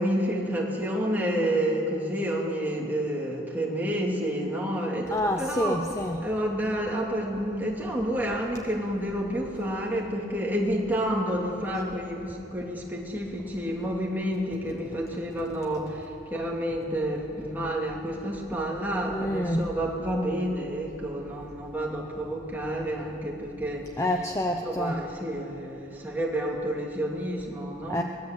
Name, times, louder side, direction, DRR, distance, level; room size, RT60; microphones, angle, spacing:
voice 1, 0.0-5.8 6.2-24.2 24.6-28.0, equal, 10° right, -2 dB, 3.0 m, -29 dB
voice 2, 5.1-6.2 19.1-19.7 24.0-25.0 27.9-28.0, left 1 dB, 15° left, 3 dB, 0.8 m, -27 dB
23.0 x 20.0 x 8.1 m, 2.7 s
head